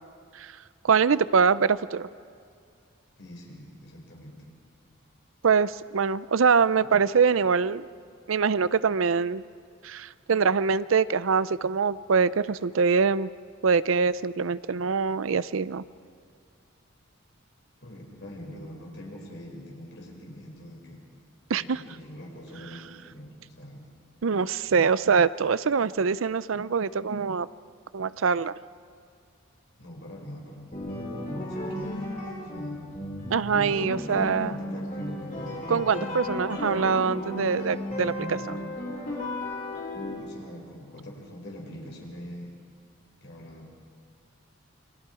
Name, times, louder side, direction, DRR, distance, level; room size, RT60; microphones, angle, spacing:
voice 1, 0.8-2.1 5.4-7.9 8.3-9.4 9.8-13.3 13.6-15.8 21.5-21.8 24.2-27.5 27.9-28.5 33.3-34.6 35.7-38.4, right 5 dB, 75° right, 17 dB, 0.5 m, -24 dB
voice 2, 3.2-4.5 6.8-6.9 17.8-21.0 21.6-23.9 29.8-30.9 31.5-32.8 33.9-35.6 36.2-36.8 40.2-42.6 43.2-43.7, equal, 60° left, -1 dB, 5.6 m, -44 dB
sound 1, 30.7-40.1, left 1 dB, 40° left, 7.1 m, -34 dB
29.0 x 23.5 x 4.9 m, 2.3 s
head